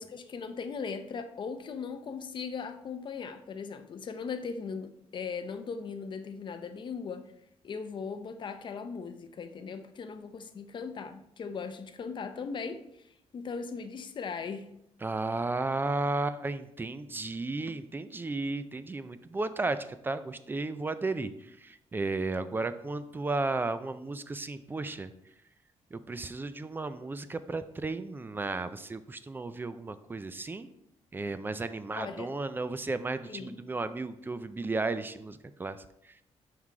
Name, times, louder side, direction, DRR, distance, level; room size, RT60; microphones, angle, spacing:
voice 1, 0.0-7.2 7.6-14.7 31.9-32.3 33.2-33.6, left 5 dB, 45° left, 9 dB, 0.5 m, -38 dB
voice 2, 15.0-19.8 20.0-21.3 21.6-25.1 25.9-30.7 31.1-35.8, right 3 dB, 20° right, 12 dB, 0.3 m, -34 dB
5.6 x 4.7 x 3.7 m, 0.78 s
cardioid pair, 140°, 12 cm